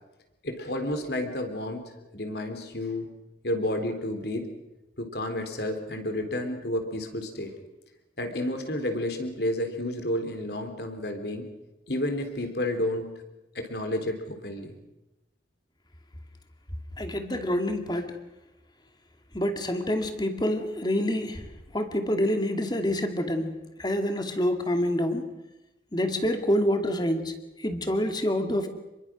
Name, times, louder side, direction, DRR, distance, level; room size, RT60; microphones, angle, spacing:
voice 1, 0.4-3.1 3.4-4.5 5.0-7.5 8.2-11.5 11.9-13.1 13.5-14.8, left 1 dB, 60° left, 6 dB, 3.7 m, -31 dB
voice 2, 17.0-18.1 19.3-21.5 21.7-23.5 23.8-25.3 25.9-27.3 27.6-28.7, left 1 dB, 20° left, 6 dB, 2.4 m, -27 dB
29.0 x 22.5 x 6.3 m, 0.98 s
head